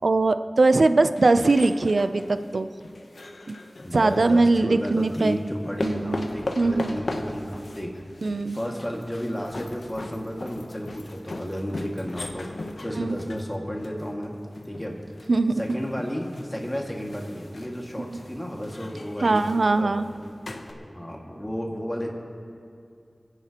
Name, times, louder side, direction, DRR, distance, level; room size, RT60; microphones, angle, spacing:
voice 1, 0.0-2.7 3.5-3.6 3.9-5.4 5.8-6.9 8.2-8.6 13.0-13.2 15.3-15.6 19.2-20.1, right 3 dB, 85° right, 10 dB, 0.4 m, -21 dB
sound 1, 1.1-4.3 5.0-20.7, left 2 dB, 85° left, 0.9 m, -39 dB
voice 2, 3.8-8.0 8.5-14.3 14.6-15.0 15.6-19.4 19.8-20.3 20.7-22.1, equal, 20° left, 0 dB, 2.0 m, -33 dB
29.0 x 10.0 x 3.0 m, 2.4 s
wide cardioid pair, 55°, 0 cm